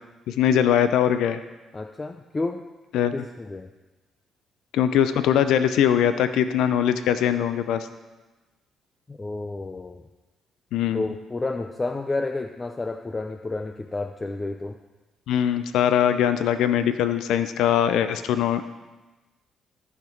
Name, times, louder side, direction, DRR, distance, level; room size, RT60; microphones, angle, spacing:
voice 1, 0.3-1.4 2.9-3.1 4.7-7.9 10.7-11.0 15.3-18.6, left 9 dB, 85° left, 11 dB, 0.4 m, -21 dB
voice 2, 1.7-2.6 3.1-3.7 9.1-10.0 10.9-14.8, left 2 dB, 25° left, 6 dB, 0.5 m, -30 dB
13.5 x 5.8 x 4.5 m, 1.2 s
cardioid pair, 90°, 0 cm